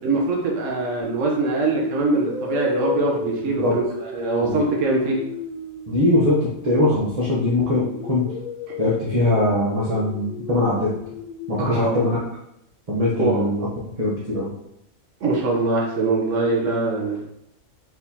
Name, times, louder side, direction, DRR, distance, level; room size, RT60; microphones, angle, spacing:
voice 1, 0.0-3.8 4.1-5.2 11.7-12.1 13.2-13.5 15.2-17.2, right 3 dB, 65° right, -2 dB, 1.2 m, -22 dB
sound 1, 1.0-1.3 2.1-7.4 7.8-11.8, left 3 dB, 70° left, 1.2 m, -33 dB
voice 2, 3.4-3.8 4.4-4.6 5.9-8.3 8.8-10.9 11.5-12.2 12.9-13.7 14.0-14.5, left 1 dB, 30° right, -7 dB, 0.9 m, -21 dB
4.6 x 3.9 x 2.7 m, 0.77 s
omnidirectional pair, 1.4 m